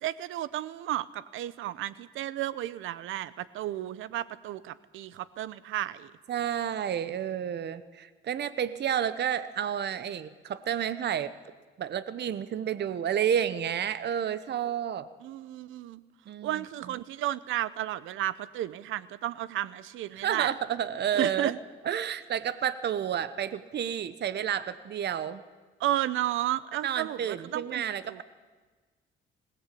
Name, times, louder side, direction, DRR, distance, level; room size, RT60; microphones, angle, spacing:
voice 1, 0.0-6.1 15.2-16.0 16.4-20.5 21.1-21.5 25.8-28.2, right 13 dB, 85° right, 18 dB, 0.8 m, -33 dB
voice 2, 6.3-11.3 11.8-15.1 16.3-16.6 20.1-21.6 21.8-25.4 26.8-28.2, right 9 dB, 60° right, 14 dB, 1.1 m, -30 dB
20.5 x 18.0 x 8.5 m, 1.4 s
cardioid pair, 90°, 20 cm